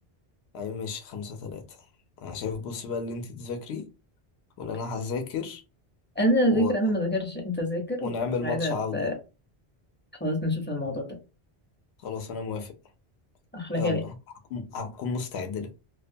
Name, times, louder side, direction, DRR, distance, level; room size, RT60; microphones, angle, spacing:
voice 1, 0.5-1.8 2.2-3.9 4.6-5.6 6.5-6.7 8.0-9.1 12.0-12.7 13.7-14.1 14.5-15.8, left 5 dB, 85° left, 0.9 m, -33 dB
voice 2, 6.2-8.1 8.4-9.1 10.2-11.0 13.5-14.0, equal, 15° left, 0.5 m, -26 dB
2.3 x 2.2 x 2.5 m
omnidirectional pair, 1.0 m